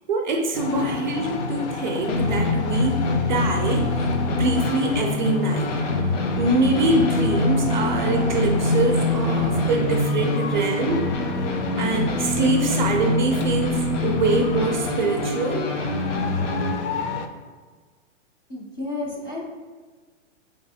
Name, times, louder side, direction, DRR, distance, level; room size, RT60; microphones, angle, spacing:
voice 1, 0.1-5.7 6.3-11.0 11.8-15.7, right 2 dB, 40° right, 3 dB, 0.4 m, -24 dB
sound 1, 0.5-17.3, left 4 dB, 70° left, 0.6 m, -32 dB
sound 2, 2.1-16.7, left 2 dB, 85° left, 1.0 m, -24 dB
voice 2, 18.5-19.4, left 2 dB, 20° left, -3 dB, 0.3 m, -31 dB
3.9 x 3.4 x 4.0 m, 1.4 s
hypercardioid pair, 165°, 36 cm